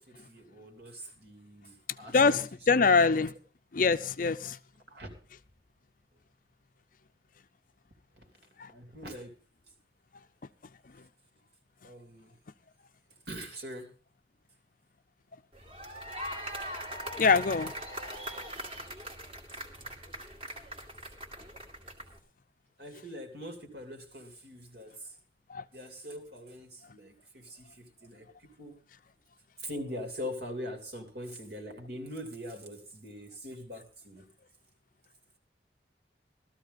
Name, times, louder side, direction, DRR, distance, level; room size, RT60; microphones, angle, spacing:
voice 1, 0.1-2.2 4.9-5.1 8.7-9.3 11.8-12.3 13.3-13.9 22.8-24.9 25.7-28.3 28.6-28.8 29.6-34.2, equal, 60° right, 3.0 m, -42 dB
voice 2, 2.1-3.3 3.7-4.6 8.6-8.7 17.2-17.7 25.5-25.6, left 4 dB, 50° left, 0.5 m, -24 dB
sound 1, 15.5-22.2, equal, 30° right, 2.3 m, -41 dB
16.0 x 13.5 x 4.0 m
head